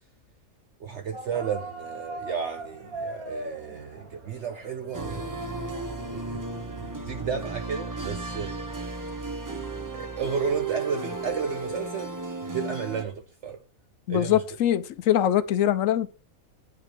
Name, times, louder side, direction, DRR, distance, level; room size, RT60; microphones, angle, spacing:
voice 1, 0.8-5.4 6.1-6.4 6.8-8.5 9.9-12.2 12.4-13.6 14.1-14.4, right 6 dB, 55° right, 1.0 m, -33 dB
sound 1, 1.1-7.0, right 2 dB, 75° right, 2.0 m, -40 dB
sound 2, 4.9-13.0, right 3 dB, 15° right, 0.7 m, -34 dB
voice 2, 14.1-16.1, left 11 dB, 70° left, 1.0 m, -23 dB
9.2 x 5.8 x 5.1 m
omnidirectional pair, 1.5 m